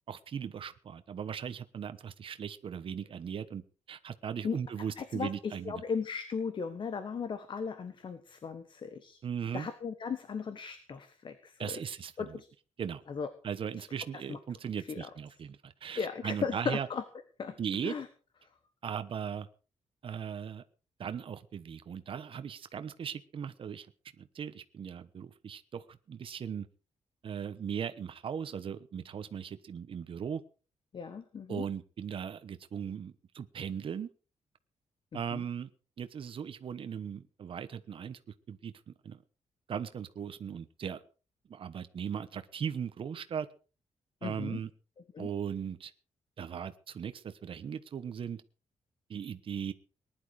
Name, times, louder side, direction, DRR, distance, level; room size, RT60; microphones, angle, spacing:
voice 1, 0.1-3.6 3.9-5.8 9.2-9.7 11.6-12.4 12.8-13.0 13.4-16.9 17.6-17.9 18.8-19.5 20.0-20.6 21.0-23.9 24.2-26.7 27.2-30.4 31.5-34.1 35.1-35.7 36.0-38.2 38.5-39.2 39.7-41.0 41.5-43.5 44.2-44.7 45.2-45.9 46.4-48.4 49.1-49.7, right 7 dB, 45° right, 11 dB, 1.1 m, -38 dB
voice 2, 5.0-9.2 9.5-11.8 12.2-12.5 13.1-13.3 14.1-14.4 14.9-15.1 15.9-17.0 17.4-17.6 17.8-18.1 30.9-31.6 35.3-35.4 44.2-44.6 45.1-45.3, left 6 dB, 40° left, 10 dB, 1.4 m, -36 dB
19.5 x 11.0 x 4.9 m, 0.37 s
wide cardioid pair, 170°, 12 cm